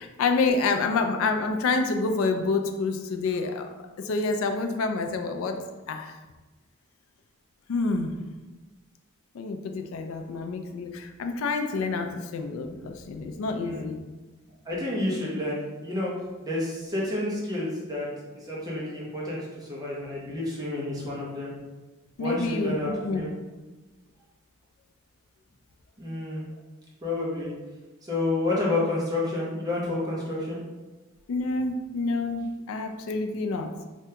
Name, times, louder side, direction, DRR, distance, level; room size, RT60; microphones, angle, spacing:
voice 1, 0.0-3.7 4.0-5.6 5.9-6.1 7.7-8.1 9.3-14.0 22.2-23.2 31.3-33.7, left 3 dB, 70° left, 5 dB, 0.3 m, -28 dB
voice 2, 14.6-16.1 16.4-18.1 18.3-19.4 19.7-21.5 22.2-23.3 26.0-26.4 27.0-27.5 28.0-30.6, left 2 dB, 15° right, -5 dB, 0.7 m, -29 dB
3.4 x 2.2 x 2.8 m, 1.2 s
head